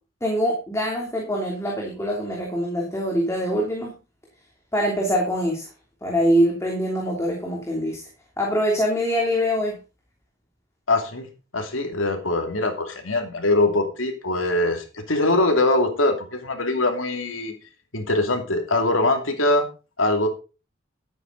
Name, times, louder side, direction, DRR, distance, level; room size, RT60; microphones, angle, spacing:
voice 1, 0.2-3.9 4.7-5.7 6.0-8.0 8.4-9.8, equal, 15° left, -1 dB, 3.1 m, -24 dB
voice 2, 10.9-11.3 11.5-17.5 17.9-19.7 20.0-20.3, left 2 dB, 90° left, 5 dB, 2.7 m, -22 dB
12.5 x 9.1 x 4.0 m, 0.32 s
head